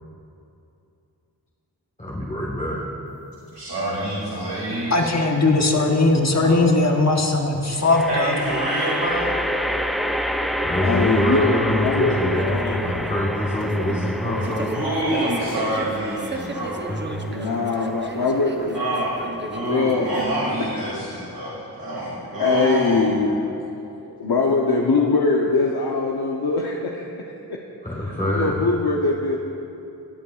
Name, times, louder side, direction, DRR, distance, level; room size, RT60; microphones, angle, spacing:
voice 1, 2.0-2.8 10.6-14.8 16.9-17.1 27.8-28.6, equal, 20° left, -6 dB, 1.4 m, -25 dB
voice 2, 3.5-5.1 6.4-6.5 7.6-7.8 8.1-9.2 13.8-14.0 14.4-16.9 18.7-19.1 19.5-23.1, right 1 dB, 65° right, -9 dB, 2.4 m, -27 dB
sound 1, 4.8-5.4 7.9-19.2, equal, ahead, 0.4 m, -29 dB
voice 3, 4.9-8.3, left 2 dB, 40° left, 2 dB, 1.1 m, -19 dB
voice 4, 10.8-12.9 14.2-14.6 17.3-18.8 19.6-20.1 22.4-23.4 24.2-27.2 27.5-27.6 28.0-29.4, left 3 dB, 65° left, -1 dB, 0.8 m, -22 dB
sound 2, 12.3-20.3, right 2 dB, 25° right, 0.7 m, -35 dB
19.5 x 8.5 x 2.4 m, 2.8 s
wide cardioid pair, 65°, 40 cm